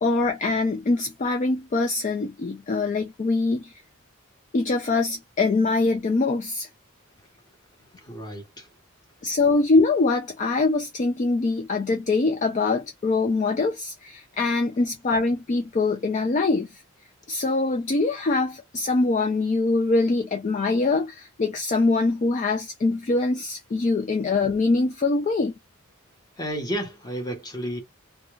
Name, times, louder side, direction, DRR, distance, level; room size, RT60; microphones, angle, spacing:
voice 1, 0.0-3.7 4.5-6.7 9.2-16.7 17.3-25.5, left 3 dB, 35° left, 0.4 m, -23 dB
voice 2, 8.0-8.7 26.4-27.8, equal, 20° left, 1.0 m, -32 dB
2.5 x 2.2 x 3.0 m
head